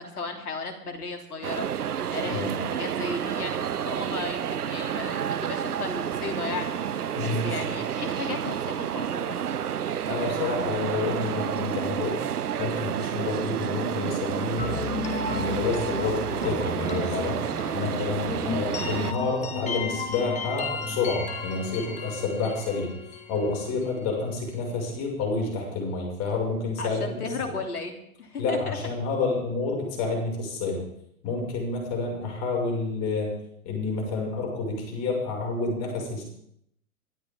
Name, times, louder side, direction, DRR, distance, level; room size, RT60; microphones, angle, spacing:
voice 1, 0.0-1.7 2.1-9.4 26.8-28.8, left 3 dB, 80° left, 4 dB, 3.3 m, -35 dB
sound 1, 1.4-19.1, right 9 dB, 80° right, 0.9 m, -30 dB
voice 2, 7.1-7.5 10.1-12.2 12.6-14.8 15.3-17.4 17.7-22.9 23.3-27.1 27.4-27.5 28.4-30.8 31.2-33.3 33.6-36.2, left 3 dB, 35° left, 0 dB, 6.4 m, -29 dB
sound 2, 14.6-24.3, left 4 dB, 15° left, 2.1 m, -34 dB
23.5 x 12.0 x 3.8 m, 0.73 s
hypercardioid pair, 120°, 45 cm